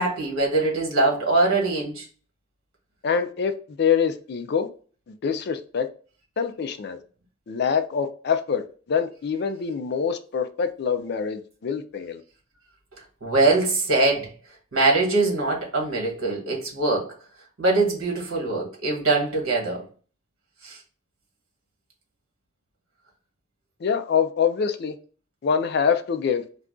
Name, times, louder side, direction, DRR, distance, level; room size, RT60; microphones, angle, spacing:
voice 1, 0.0-2.0 13.2-14.3 14.7-17.1 17.6-19.8 20.6-20.8, right 2 dB, 75° right, 1.2 m, -22 dB
voice 2, 3.0-3.5 3.8-4.7 5.2-5.9 6.4-7.0 7.5-12.2 23.8-24.9 25.4-26.4, left 6 dB, 50° left, 0.3 m, -25 dB
2.4 x 2.2 x 3.6 m
head